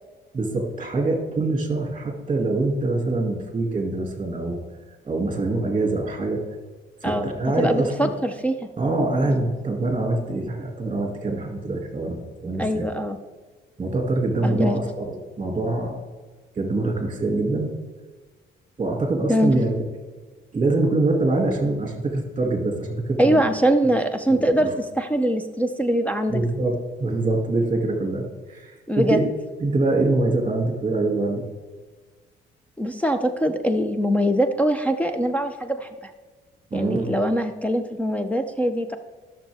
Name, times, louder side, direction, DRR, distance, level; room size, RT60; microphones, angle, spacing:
voice 1, 0.3-4.6 5.0-6.4 7.0-8.1 8.8-12.9 13.8-16.0 16.5-17.7 18.8-19.9 20.5-23.4 24.3-24.7 26.3-29.3 29.6-31.5 36.7-37.1, right 2 dB, 25° right, 2 dB, 2.3 m, -24 dB
voice 2, 7.6-8.6 12.6-13.2 14.4-14.8 19.3-19.5 23.2-26.4 28.9-29.2 32.8-36.1 36.7-39.0, equal, 5° left, 7 dB, 0.7 m, -22 dB
14.5 x 6.6 x 3.5 m, 1.4 s
cardioid pair, 90°, 20 cm